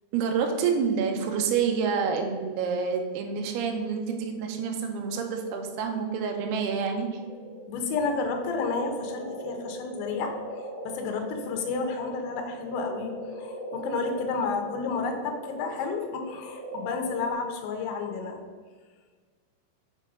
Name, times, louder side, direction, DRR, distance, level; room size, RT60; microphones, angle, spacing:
voice 1, 0.1-7.1, right 6 dB, 85° right, 3 dB, 2.3 m, -28 dB
sound 1, 7.1-17.3, right 1 dB, 60° right, 2.3 m, -39 dB
voice 2, 7.7-18.4, left 4 dB, 75° left, 4 dB, 3.1 m, -31 dB
7.1 x 4.5 x 6.1 m, 1.5 s
omnidirectional pair, 5.7 m